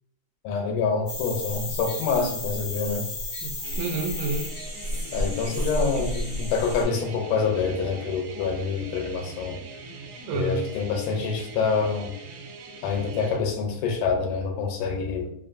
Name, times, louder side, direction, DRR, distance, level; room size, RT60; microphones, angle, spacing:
voice 1, 0.4-3.1 5.1-9.6 10.3-12.1 12.8-15.3, left 5 dB, 90° left, 3 dB, 2.2 m, -26 dB
sound 1, 1.1-6.8, left 1 dB, 65° left, 0.6 m, -32 dB
voice 2, 3.4-4.5 5.3-6.0 10.3-10.7, right 3 dB, 90° right, 3 dB, 2.1 m, -31 dB
sound 2, 3.6-13.4, right 3 dB, 70° right, 1.6 m, -43 dB
5.0 x 2.6 x 2.5 m, 0.75 s
omnidirectional pair, 3.5 m